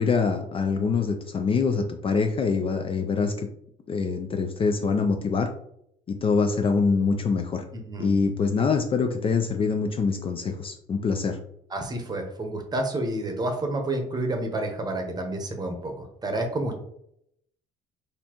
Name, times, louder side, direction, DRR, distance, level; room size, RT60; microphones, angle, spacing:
voice 1, 0.0-3.5 3.9-5.5 6.1-7.6 8.0-11.4, left 4 dB, 35° left, 6 dB, 0.4 m, -24 dB
voice 2, 7.7-8.1 11.7-16.8, right 1 dB, 25° right, 4 dB, 0.8 m, -29 dB
4.1 x 2.6 x 2.9 m, 0.74 s
cardioid pair, 110°, 17 cm